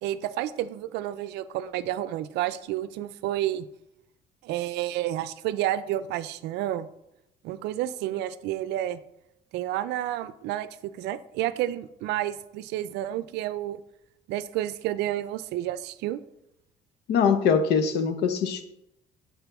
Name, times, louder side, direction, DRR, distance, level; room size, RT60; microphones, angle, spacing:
voice 1, 0.0-3.7 4.4-6.9 7.4-9.0 9.5-13.8 14.3-16.2, right 13 dB, 85° right, 15 dB, 0.4 m, -30 dB
voice 2, 17.1-18.6, left 6 dB, 80° left, 9 dB, 0.9 m, -22 dB
11.0 x 4.4 x 3.5 m, 0.83 s
cardioid pair, 110°, 17 cm